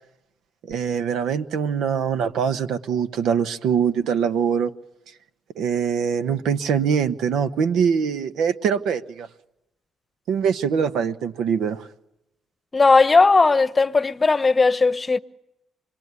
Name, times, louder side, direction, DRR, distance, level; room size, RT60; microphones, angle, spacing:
voice 1, 0.7-4.7 5.6-9.3 10.3-11.8, right 7 dB, 80° right, 1.2 m, -23 dB
voice 2, 12.7-15.2, left 4 dB, 25° left, 0.9 m, -17 dB
27.5 x 21.5 x 9.7 m
cardioid pair, 90°, 0 cm